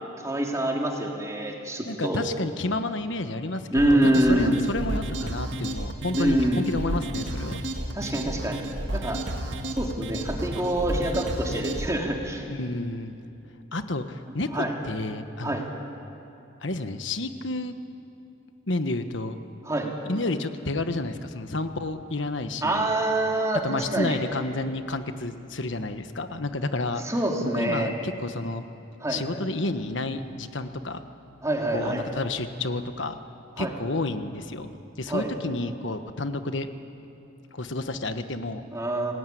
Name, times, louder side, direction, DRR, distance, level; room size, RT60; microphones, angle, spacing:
voice 1, 0.2-2.2 3.7-4.6 6.2-6.6 7.9-8.7 8.9-9.2 9.8-12.4 14.5-14.7 15.4-15.6 19.6-19.9 22.6-24.2 27.0-27.9 29.0-29.2 31.4-32.0 33.6-33.7 35.1-35.3 38.7-39.1, right 1 dB, 15° right, 0 dB, 3.0 m, -25 dB
voice 2, 1.9-7.6 12.5-13.2 13.7-15.7 16.6-17.8 18.7-19.4 19.9-22.9 23.6-27.0 27.5-28.6 29.1-31.0 31.7-33.1 33.6-34.7 35.0-36.7 37.5-38.6, left 2 dB, 65° left, 9 dB, 1.4 m, -30 dB
sound 1, 3.8-11.9, right 1 dB, 65° right, 1.9 m, -32 dB
29.0 x 19.0 x 9.4 m, 2.8 s
head